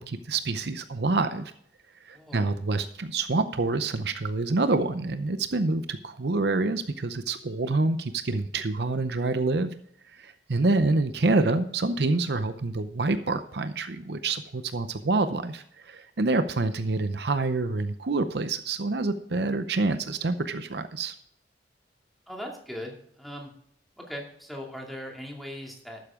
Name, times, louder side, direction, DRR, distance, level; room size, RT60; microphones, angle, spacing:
voice 1, 0.0-1.5 2.1-9.7 10.1-21.1, right 3 dB, 60° right, 10 dB, 0.7 m, -27 dB
voice 2, 2.1-2.5 10.5-10.6 22.3-23.5 24.0-26.0, equal, ahead, -1 dB, 2.5 m, -39 dB
12.0 x 9.4 x 3.7 m, 0.66 s
head